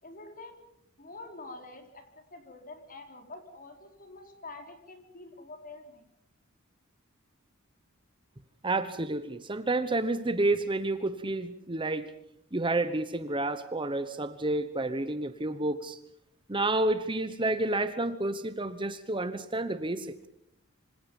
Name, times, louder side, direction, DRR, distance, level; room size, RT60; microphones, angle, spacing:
voice 1, 0.0-0.6 1.0-6.1, left 2 dB, 40° left, 5 dB, 4.3 m, -46 dB
voice 2, 8.6-12.1 12.5-16.0 16.5-20.3, right 2 dB, 25° right, 11 dB, 1.1 m, -30 dB
26.5 x 25.5 x 5.4 m, 0.74 s
head